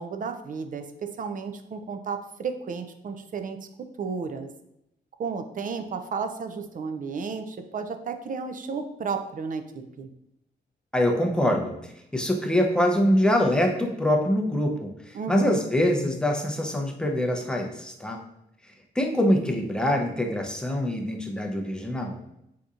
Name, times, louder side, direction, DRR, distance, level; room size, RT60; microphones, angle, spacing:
voice 1, 0.0-3.6 4.0-4.5 5.2-10.1 15.1-15.6, right 5 dB, 50° right, 7 dB, 0.4 m, -33 dB
voice 2, 10.9-18.2 19.0-22.2, left 1 dB, 5° left, 2 dB, 0.5 m, -24 dB
3.5 x 2.7 x 2.4 m, 0.81 s
cardioid pair, 75°, 18 cm